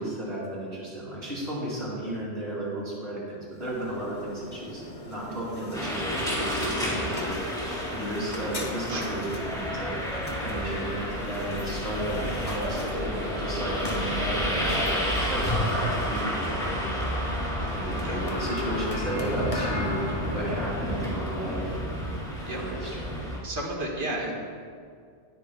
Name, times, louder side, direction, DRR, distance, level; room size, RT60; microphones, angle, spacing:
voice 1, 0.0-16.9 17.7-22.0 22.6-23.1, right 1 dB, 65° right, -6 dB, 2.6 m, -34 dB
sound 1, 3.5-22.6, left 1 dB, 30° left, 1.3 m, -38 dB
sound 2, 5.7-23.4, equal, 5° left, 2.1 m, -31 dB
sound 3, 11.0-19.0, left 1 dB, 40° right, 2.4 m, -36 dB
voice 2, 23.4-24.3, right 1 dB, 85° right, -1 dB, 2.0 m, -32 dB
20.0 x 7.9 x 2.3 m, 2.2 s
omnidirectional pair, 1.1 m